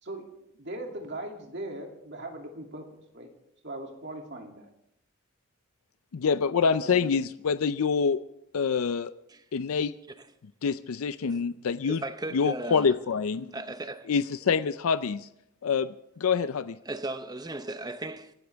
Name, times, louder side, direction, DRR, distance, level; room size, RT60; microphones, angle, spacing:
voice 1, 0.5-2.9 3.1-3.3 3.6-4.7 6.6-7.3, right 1 dB, 50° right, 2.6 m, -39 dB
voice 2, 6.1-8.2 8.5-9.1 9.5-9.9 10.6-12.0 12.3-13.5 14.1-15.3 15.6-16.8, left 6 dB, 80° left, 0.5 m, -26 dB
voice 3, 11.8-12.9 13.5-14.1 16.8-18.3, right 2 dB, 20° right, 0.8 m, -36 dB
26.5 x 13.0 x 3.5 m
head